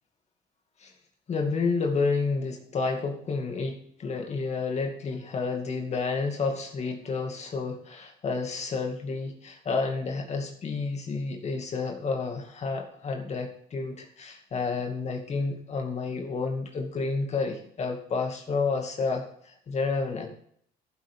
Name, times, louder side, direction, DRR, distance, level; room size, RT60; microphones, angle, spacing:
voice 1, 1.3-20.3, left 4 dB, 40° left, 3 dB, 2.3 m, -30 dB
14.5 x 8.0 x 3.7 m, 0.63 s
cardioid pair, 110°, 17 cm